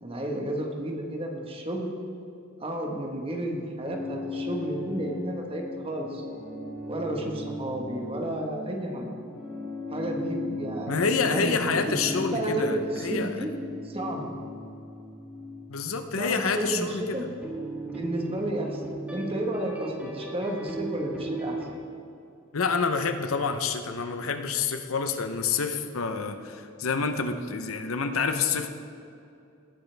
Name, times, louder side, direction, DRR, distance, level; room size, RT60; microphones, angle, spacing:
voice 1, 0.0-1.9 2.6-6.2 6.9-9.1 9.9-12.0 12.3-13.5 13.8-14.3 16.2-17.3 17.8-18.8 19.1-21.6, right 1 dB, 25° right, 1 dB, 1.4 m, -32 dB
sound 1, 3.8-21.7, left 1 dB, 5° right, 1.7 m, -37 dB
voice 2, 10.9-13.4 15.7-17.3 22.5-28.7, left 5 dB, 80° left, 8 dB, 0.8 m, -28 dB
18.5 x 9.5 x 3.4 m, 2.6 s
head